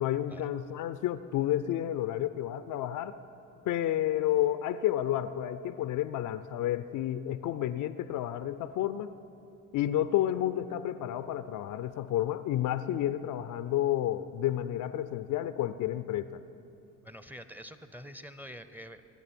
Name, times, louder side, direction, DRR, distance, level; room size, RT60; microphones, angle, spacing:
voice 1, 0.0-3.2 3.7-9.1 9.7-16.4, left 12 dB, 50° left, 13 dB, 0.5 m, -30 dB
voice 2, 17.0-19.1, equal, 5° right, 11 dB, 0.7 m, -46 dB
22.5 x 9.7 x 4.4 m, 2.7 s
hypercardioid pair, 60°, 39 cm